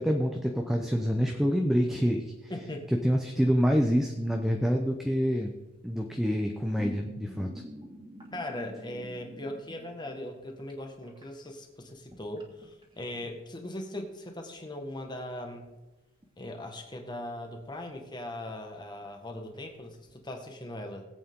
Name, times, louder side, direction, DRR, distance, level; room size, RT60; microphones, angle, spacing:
voice 1, 0.0-2.2 3.0-5.5 5.8-7.5, equal, ahead, 2 dB, 0.7 m, -26 dB
sound 1, 0.7-2.9 3.3-5.2 6.2-10.7 11.0-13.3 14.4-14.6 14.9-15.0 15.3-15.8 16.2-16.3 16.6-17.2 17.7-18.1 18.5-18.6 19.0-19.1 19.3-20.1, equal, 20° right, 2.3 m, -47 dB
voice 2, 2.5-2.9 8.3-15.7 16.4-21.0, left 1 dB, 20° left, 3 dB, 1.6 m, -39 dB
20.5 x 8.4 x 3.7 m, 1.1 s
head